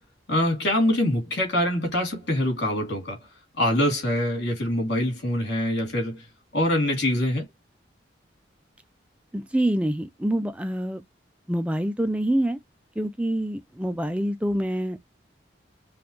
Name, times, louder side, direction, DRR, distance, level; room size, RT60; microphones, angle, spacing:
voice 1, 0.3-3.3 3.6-6.2 6.5-7.4, left 1 dB, 60° left, 2.7 m, -24 dB
voice 2, 9.3-11.0 11.5-12.6 13.0-15.0, right 1 dB, 5° right, 0.3 m, -26 dB
5.1 x 2.3 x 2.9 m
head